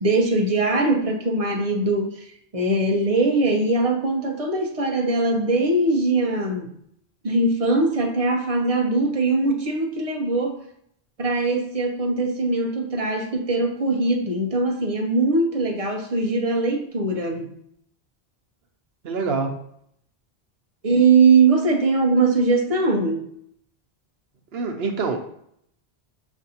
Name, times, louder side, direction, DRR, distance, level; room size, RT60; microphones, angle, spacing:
voice 1, 0.0-6.7 7.2-10.6 11.2-17.5 20.8-23.3, right 3 dB, 40° right, 3 dB, 0.7 m, -21 dB
voice 2, 19.0-19.5 24.5-25.2, right 4 dB, 75° right, 3 dB, 1.0 m, -25 dB
7.0 x 2.6 x 2.8 m, 0.70 s
omnidirectional pair, 1.1 m